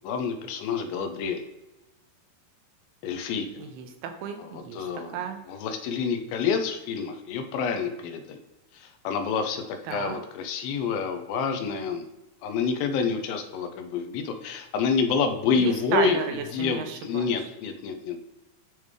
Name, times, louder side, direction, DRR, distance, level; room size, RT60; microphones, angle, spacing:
voice 1, 0.0-1.4 3.0-3.5 4.4-5.2 5.5-8.4 8.7-12.1 12.4-16.2 16.5-18.2, left 5 dB, 80° left, 6 dB, 2.3 m, -28 dB
voice 2, 3.6-5.4 9.9-10.2 15.5-17.3, right 7 dB, 85° right, 6 dB, 2.7 m, -33 dB
10.5 x 3.5 x 3.2 m, 1.0 s
omnidirectional pair, 4.6 m